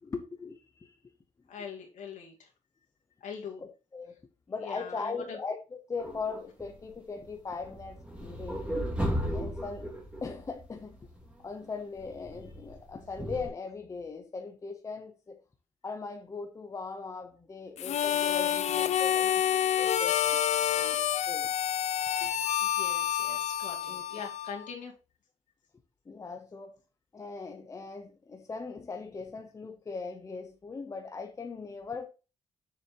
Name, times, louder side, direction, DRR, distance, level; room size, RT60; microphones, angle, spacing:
voice 1, 0.0-1.0 3.6-4.2 4.5-8.9 9.3-9.9 10.2-11.0 11.4-15.4 15.8-20.4 20.7-21.0 21.3-21.5 22.2-22.4 23.9-24.0 26.1-26.8 27.1-32.1, left 4 dB, 25° left, 0.8 m, -39 dB
voice 2, 1.5-2.3 3.2-3.6 4.6-5.4 22.6-24.9, left 6 dB, 75° left, 2.5 m, -42 dB
sound 1, 6.0-6.9 7.2-11.3 12.0-13.5, equal, 10° right, 2.2 m, -36 dB
Harmonica, 17.8-24.7, left 10 dB, 60° left, 0.5 m, -28 dB
7.3 x 6.5 x 3.0 m
cardioid pair, 145°, 13 cm